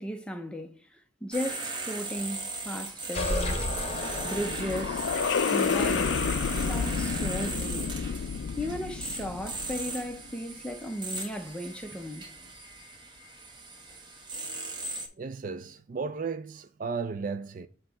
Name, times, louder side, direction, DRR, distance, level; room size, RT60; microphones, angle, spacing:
voice 1, 0.0-3.7 4.2-5.1 5.4-6.2 6.6-8.0 8.6-12.3, equal, 5° left, 0.5 m, -36 dB
sound 1, 1.3-15.1, right 2 dB, 25° right, 1.1 m, -37 dB
sound 2, 3.1-5.2, left 1 dB, 35° left, 1.2 m, -32 dB
sound 3, 3.6-10.1, left 6 dB, 70° left, 0.3 m, -30 dB
voice 2, 15.2-17.7, right 5 dB, 45° right, 0.4 m, -34 dB
7.4 x 2.9 x 5.6 m
head